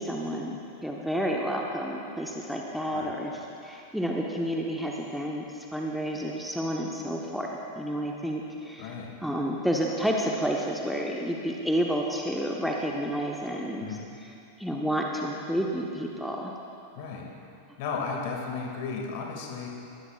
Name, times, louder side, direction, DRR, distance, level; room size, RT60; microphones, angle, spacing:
voice 1, 0.0-3.3 3.6-7.5 7.8-8.9 9.2-13.9 14.6-16.5, equal, ahead, -1 dB, 1.1 m, -30 dB
voice 2, 8.8-9.1 13.8-14.0 17.0-17.3 17.8-19.7, left 5 dB, 50° left, 0 dB, 2.3 m, -34 dB
22.0 x 15.0 x 2.5 m, 2.6 s
figure-of-eight pair, 90°, 0 cm